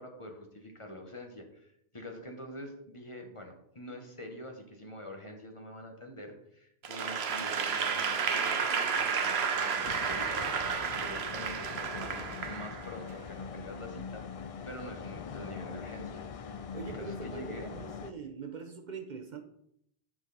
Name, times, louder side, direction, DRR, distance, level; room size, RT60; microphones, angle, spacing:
voice 1, 0.0-16.3 16.9-17.7, left 1 dB, 30° left, 3 dB, 1.2 m, -46 dB
Applause / Crowd, 6.8-13.1, right 6 dB, 85° right, 1.0 m, -31 dB
sound 1, 9.8-18.1, left 6 dB, 50° left, 0.4 m, -42 dB
voice 2, 16.7-19.4, right 5 dB, 50° right, 5 dB, 0.8 m, -43 dB
9.0 x 6.0 x 4.0 m, 0.74 s
omnidirectional pair, 1.0 m